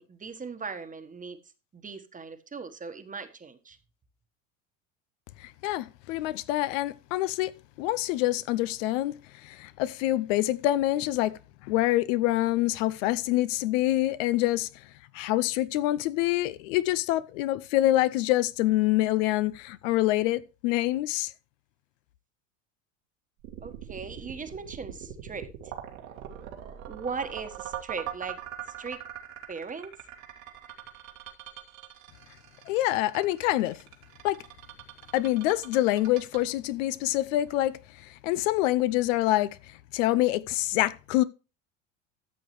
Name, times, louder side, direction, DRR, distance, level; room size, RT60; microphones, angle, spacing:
voice 1, 0.0-1.4 1.7-3.8 23.6-25.5 26.9-28.4 28.7-29.0 29.5-29.9, right 5 dB, 20° right, 1.2 m, -38 dB
voice 2, 5.4-7.5 7.8-9.2 9.4-11.3 11.6-14.7 15.1-21.3 32.7-33.8 34.2-34.4 35.1-39.5 39.9-41.2, left 15 dB, 75° left, 0.7 m, -26 dB
sound 1, 23.4-37.5, right 11 dB, 80° right, 2.1 m, -42 dB
13.5 x 6.9 x 3.1 m
hypercardioid pair, 90°, 38 cm